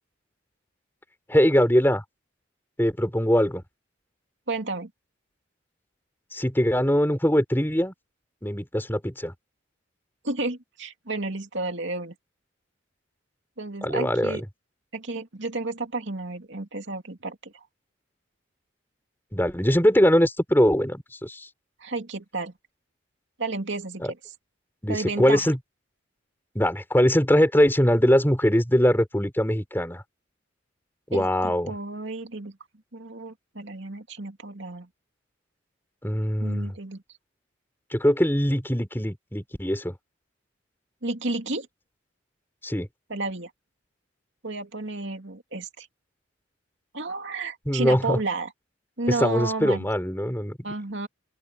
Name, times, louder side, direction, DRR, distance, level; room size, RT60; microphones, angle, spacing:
voice 1, 1.3-2.0 2.8-3.6 6.3-7.9 8.4-9.3 13.8-14.4 19.3-21.5 24.0-24.1 24.8-25.6 26.5-30.0 31.1-31.7 36.0-36.7 37.9-40.0 42.6-42.9 47.7-48.2 49.1-50.6, equal, 10° left, 4.3 m, -22 dB
voice 2, 4.5-4.9 10.2-12.1 13.6-14.4 14.9-17.7 21.8-22.5 23.4-24.2 24.9-25.5 31.1-32.6 32.9-34.9 36.4-37.0 41.0-41.7 43.1-43.5 44.4-45.9 46.9-48.5 49.0-49.9 50.6-51.1, right 3 dB, 60° right, 2.8 m, -32 dB
open air
head